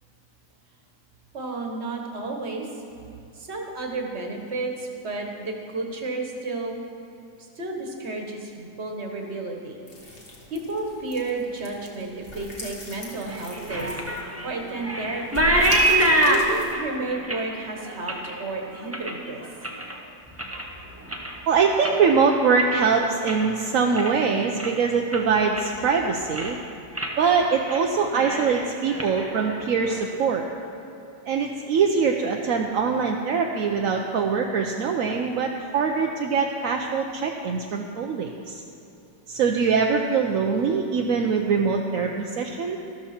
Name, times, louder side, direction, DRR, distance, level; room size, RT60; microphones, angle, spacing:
voice 1, 1.3-2.8 3.3-6.8 7.6-10.2 10.5-13.9 14.4-15.5 16.3-19.4, right 2 dB, 40° right, 2 dB, 1.6 m, -32 dB
sound 1, 9.9-16.8, left 1 dB, 30° left, 1.8 m, -40 dB
sound 2, 13.3-19.9 20.3-20.8 21.0-23.5 23.8-24.3 24.6-24.7 25.1-25.9 26.2-26.6 26.9-27.2 27.5-27.8 28.1-30.0, right 1 dB, 10° right, 0.7 m, -26 dB
voice 2, 21.5-26.6 27.2-30.5 31.3-38.6 39.3-42.8, right 5 dB, 60° right, 1 dB, 0.9 m, -23 dB
13.5 x 13.0 x 4.4 m, 2.8 s
omnidirectional pair, 2.0 m